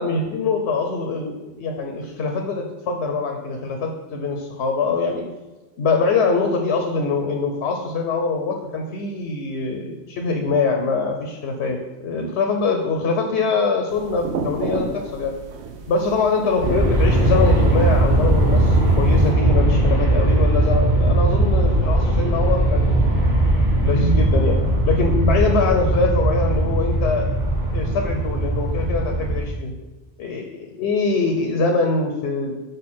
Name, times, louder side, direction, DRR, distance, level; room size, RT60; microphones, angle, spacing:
voice 1, 0.0-5.3 5.8-15.3 15.9-23.1 23.8-27.3 27.7-29.7 30.2-32.6, left 4 dB, 80° left, 3 dB, 1.0 m, -23 dB
sound 1, 13.9-19.3, right 4 dB, 90° right, 1.0 m, -33 dB
Aircraft, 16.6-29.4, right 1 dB, 45° right, 1.8 m, -19 dB
6.6 x 5.1 x 4.3 m, 1.1 s
omnidirectional pair, 1.1 m